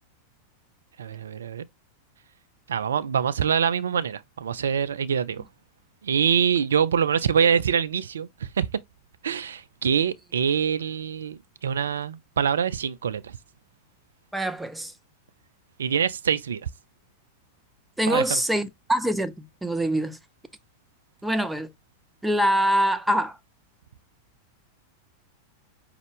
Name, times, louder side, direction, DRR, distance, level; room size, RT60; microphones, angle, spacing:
voice 1, 1.0-1.6 2.7-5.4 6.0-8.8 9.2-13.4 15.8-16.7 18.1-18.4, right 7 dB, 65° right, 0.4 m, -25 dB
voice 2, 14.3-14.9 18.0-20.2 21.2-21.7 22.2-23.4, right 1 dB, 5° right, 0.6 m, -24 dB
5.3 x 2.3 x 3.4 m
figure-of-eight pair, 90°, 0 cm